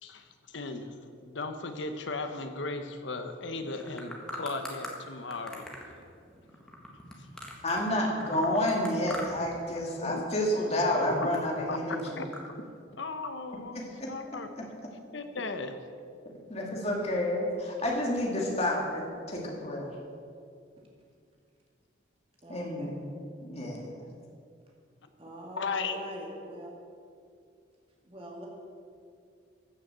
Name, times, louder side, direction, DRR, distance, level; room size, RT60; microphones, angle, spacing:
voice 1, 0.0-6.0 10.0-10.2 11.5-11.8 12.2-12.3 13.0-13.8 14.1-14.5 15.1-15.8 25.6-26.0, left 3 dB, 75° left, 8 dB, 1.1 m, -36 dB
sound 1, 3.6-4.9 5.3-7.9 8.2-9.5 9.8-10.3 10.7-12.5, left 1 dB, 5° left, 1.7 m, -42 dB
voice 2, 7.6-12.2 13.7-14.1 14.6-14.7 16.5-19.9 22.5-23.0 23.4-24.0, left 1 dB, 35° left, -1 dB, 2.4 m, -30 dB
voice 3, 22.4-22.9 25.2-26.7 28.0-28.5, right 1 dB, 30° right, -2 dB, 2.2 m, -42 dB
14.5 x 6.7 x 7.6 m, 2.4 s
head